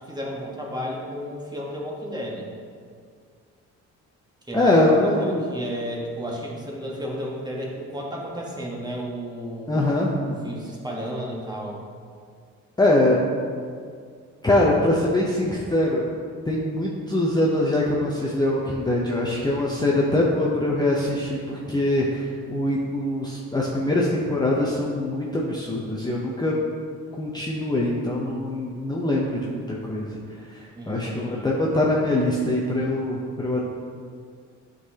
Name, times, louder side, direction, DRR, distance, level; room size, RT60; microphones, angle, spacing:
voice 1, 0.1-2.5 4.5-9.9 10.2-11.8 30.7-31.5, equal, 15° right, -2 dB, 1.3 m, -33 dB
voice 2, 4.5-5.5 9.7-10.2 12.8-13.2 14.4-16.0 16.5-26.6 27.2-30.2 30.5-33.6, left 1 dB, 15° left, -4 dB, 0.7 m, -23 dB
9.2 x 3.9 x 2.8 m, 2.1 s
cardioid pair, 90°, 30 cm